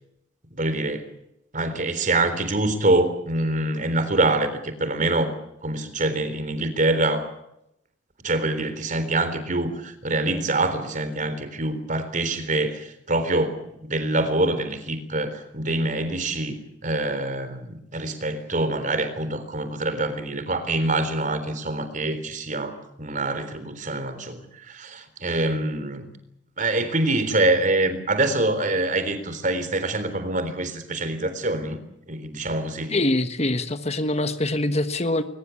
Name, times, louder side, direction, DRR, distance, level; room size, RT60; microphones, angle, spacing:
voice 1, 0.5-1.1 1.5-5.3 5.6-7.3 8.2-26.1 26.6-31.8 32.1-33.0, right 2 dB, 40° right, 11 dB, 3.7 m, -25 dB
voice 2, 32.9-35.2, left 1 dB, 35° left, 10 dB, 1.4 m, -24 dB
22.5 x 21.0 x 8.5 m, 0.81 s
head